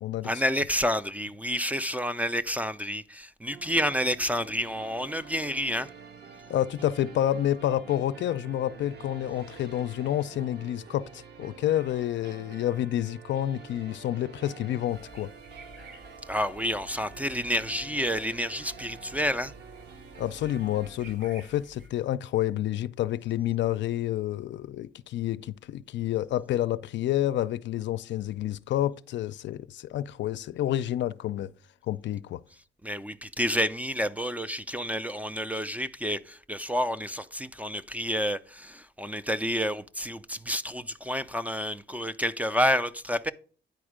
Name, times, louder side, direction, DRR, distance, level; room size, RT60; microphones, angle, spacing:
voice 1, 0.2-5.9 16.3-19.5 32.8-43.3, equal, 5° right, 0.4 m, -29 dB
sound 1, 3.5-21.0, right 5 dB, 55° right, 0.9 m, -48 dB
voice 2, 6.5-15.3 20.2-31.5 31.9-32.4, left 12 dB, 65° left, 0.4 m, -29 dB
sound 2, 14.9-21.9, right 1 dB, 70° right, 3.1 m, -51 dB
9.4 x 4.4 x 4.9 m
cardioid pair, 90°, 20 cm